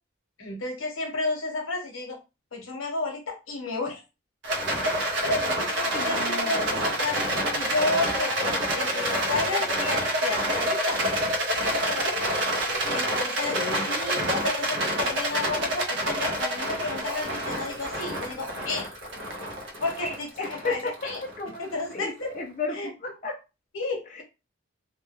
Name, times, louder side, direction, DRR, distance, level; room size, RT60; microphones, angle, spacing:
voice 1, 0.4-2.2 2.5-4.0 5.2-11.0 11.6-12.3 12.9-13.6 13.8-18.9 19.8-21.2 21.6-22.3 22.7-22.9 23.7-24.2, left 3 dB, 80° left, 2 dB, 0.8 m, -32 dB
Rattle, 4.4-21.8, right 1 dB, 65° right, 0.5 m, -28 dB
voice 2, 5.9-6.8 13.5-13.9 20.0-20.9 21.4-22.7 23.0-23.3, left 3 dB, 35° left, 0 dB, 0.4 m, -33 dB
2.2 x 2.1 x 3.0 m, 0.28 s
head